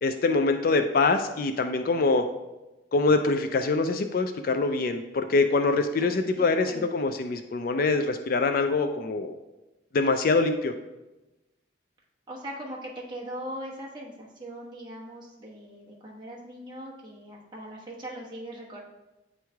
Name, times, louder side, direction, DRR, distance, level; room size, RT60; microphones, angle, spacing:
voice 1, 0.0-2.3 2.9-9.3 9.9-10.7, left 3 dB, 45° left, 7 dB, 0.3 m, -24 dB
voice 2, 6.0-6.9 12.3-18.8, equal, 20° right, -4 dB, 1.1 m, -40 dB
8.9 x 3.1 x 3.4 m, 1.0 s
head